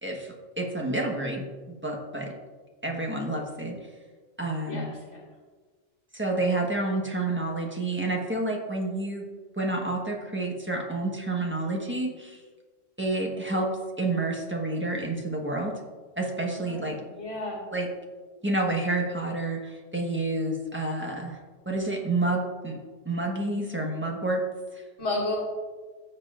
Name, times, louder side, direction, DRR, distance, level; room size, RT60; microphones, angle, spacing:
voice 1, 0.0-2.3 2.8-3.8 4.4-4.9 6.1-9.2 9.6-12.4 13.0-13.7 14.0-15.7 16.2-17.0 17.7-17.9 18.4-21.4 21.6-24.4 24.7-24.8, right 2 dB, 10° right, 0 dB, 1.2 m, -29 dB
voice 2, 4.7-5.2 16.5-17.6 25.0-25.4, left 2 dB, 70° left, -7 dB, 2.3 m, -32 dB
15.5 x 6.6 x 2.5 m, 1.4 s
omnidirectional pair, 1.2 m